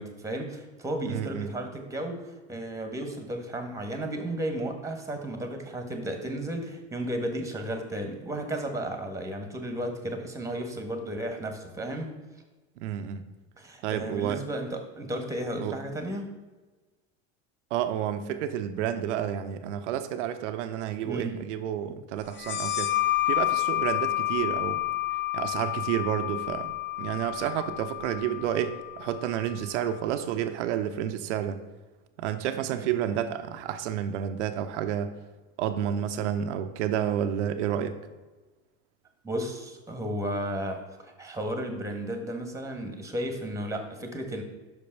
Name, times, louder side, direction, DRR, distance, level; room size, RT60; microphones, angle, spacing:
voice 1, 0.0-12.1 13.6-16.3 21.0-21.4 32.7-32.9 39.2-44.4, right 1 dB, 10° right, 5 dB, 1.5 m, -34 dB
voice 2, 1.0-1.5 12.8-13.2 13.8-14.4 15.6-15.8 17.7-22.9 23.3-24.8 25.3-26.7 27.0-31.6 32.2-35.1 35.6-37.9, right 10 dB, 85° right, 9 dB, 0.7 m, -30 dB
sound 1, 22.3-29.6, left 16 dB, 35° left, 0.7 m, -30 dB
5.9 x 5.4 x 5.9 m, 1.2 s
supercardioid pair, 100°, 34 cm